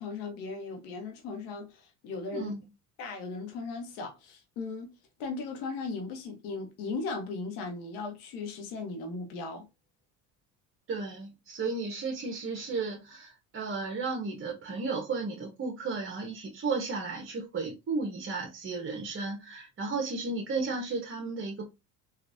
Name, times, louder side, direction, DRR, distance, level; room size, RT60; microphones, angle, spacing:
voice 1, 0.0-2.5 3.0-4.9 5.2-9.7, left 4 dB, 80° left, 1.0 m, -37 dB
voice 2, 10.9-21.7, right 4 dB, 35° right, 0.9 m, -34 dB
3.3 x 2.4 x 2.5 m
supercardioid pair, 80°, 38 cm